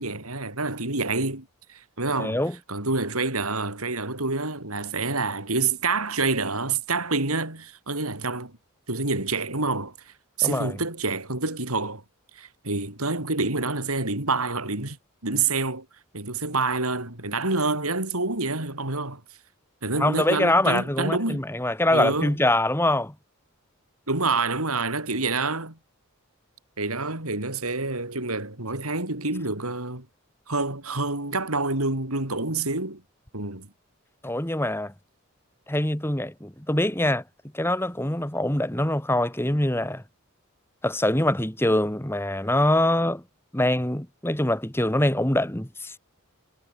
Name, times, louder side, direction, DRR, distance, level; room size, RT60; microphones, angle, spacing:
voice 1, 0.0-2.4 2.7-8.5 8.9-12.0 12.4-15.0 15.2-15.9 16.1-19.2 19.8-21.4 21.9-22.3 24.1-25.8 26.8-30.1 30.5-33.0 33.3-33.7, right 3 dB, 85° right, 6.4 m, -27 dB
voice 2, 2.2-2.6 10.4-10.8 20.0-23.1 34.2-34.9 35.7-37.2 37.5-40.0 40.8-43.2 43.5-46.0, left 1 dB, 10° left, 2.1 m, -24 dB
head